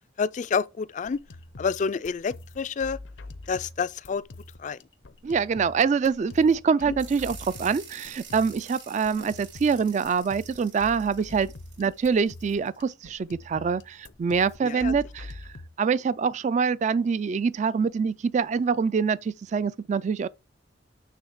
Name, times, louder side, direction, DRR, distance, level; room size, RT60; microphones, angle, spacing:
voice 1, 0.2-1.2 1.6-3.0 3.5-4.2 4.6-4.8 6.9-7.0 9.1-9.3 14.6-14.9, left 5 dB, 40° left, 0.3 m, -28 dB
sound 1, 0.9-15.7, left 2 dB, 85° left, 0.7 m, -45 dB
voice 2, 5.2-11.5 11.8-20.3, right 5 dB, 40° right, 0.3 m, -25 dB
sound 2, 7.0-12.8, right 7 dB, 75° right, 3.2 m, -47 dB
9.3 x 3.2 x 6.4 m
head